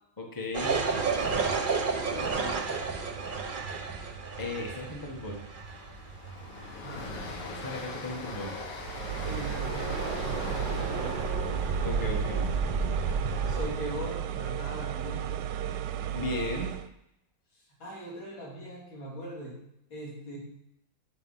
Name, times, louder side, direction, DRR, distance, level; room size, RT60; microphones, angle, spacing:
voice 1, 0.2-0.8 4.4-5.4 7.5-8.6 11.8-12.5 16.1-16.7, left 2 dB, 10° left, 1 dB, 1.3 m, -35 dB
sound 1, 0.5-13.7, right 4 dB, 40° right, 0.8 m, -33 dB
voice 2, 2.1-2.9 6.8-7.1 9.2-11.5 13.5-15.3 17.8-19.6 19.9-20.4, equal, 85° left, -4 dB, 4.1 m, -40 dB
Train, 3.5-3.8 4.1-4.2 4.6-14.7, left 3 dB, 65° left, 1.9 m, -43 dB
sound 2, 8.8-16.9, right 10 dB, 75° right, 1.2 m, -34 dB
9.9 x 7.1 x 5.7 m, 0.79 s
omnidirectional pair, 2.1 m